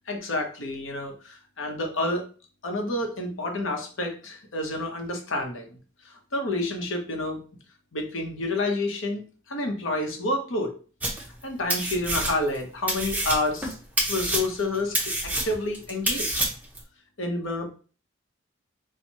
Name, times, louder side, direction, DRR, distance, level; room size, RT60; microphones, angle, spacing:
voice 1, 0.1-2.2 2.6-5.8 6.0-7.4 7.9-10.7 11.4-13.7 14.1-15.1 15.4-16.4 17.2-17.7, left 2 dB, 75° left, 2 dB, 0.9 m, -29 dB
sound 1, 11.0-11.4 11.7-12.6 12.9-16.8, right 1 dB, 10° right, 0.7 m, -27 dB
4.4 x 2.2 x 2.8 m, 0.37 s
head